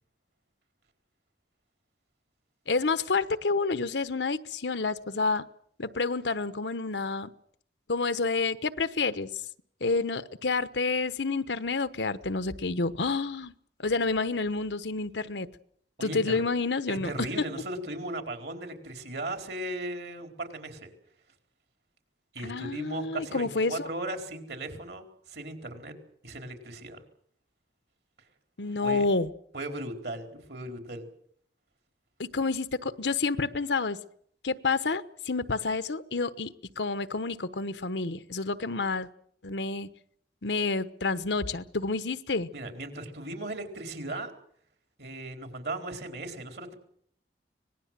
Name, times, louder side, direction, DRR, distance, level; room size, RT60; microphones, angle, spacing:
voice 1, 2.7-5.4 5.8-7.3 7.9-9.3 9.8-13.5 13.8-15.5 16.0-17.1 22.4-23.9 28.6-29.3 32.2-34.0 34.4-39.1 39.4-39.9 40.4-42.5, left 3 dB, 80° left, 13 dB, 1.1 m, -29 dB
voice 2, 16.0-16.4 16.9-20.9 22.3-25.9 26.2-27.0 28.8-29.1 29.5-31.1 42.5-44.3 45.0-46.7, right 2 dB, 65° right, 5 dB, 4.2 m, -37 dB
25.0 x 19.5 x 7.6 m, 0.66 s
head